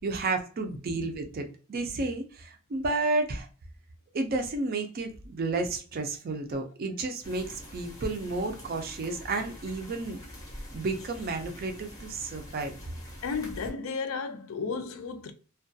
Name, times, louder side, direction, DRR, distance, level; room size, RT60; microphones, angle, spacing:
voice 1, 0.0-3.5 4.1-10.2 10.7-12.7, right 3 dB, 45° right, 0.4 m, -31 dB
voice 2, 0.7-1.1 13.2-15.3, left 5 dB, 65° left, 0.4 m, -34 dB
sound 1, 7.2-13.7, equal, 15° left, 0.6 m, -45 dB
2.2 x 2.2 x 2.6 m
head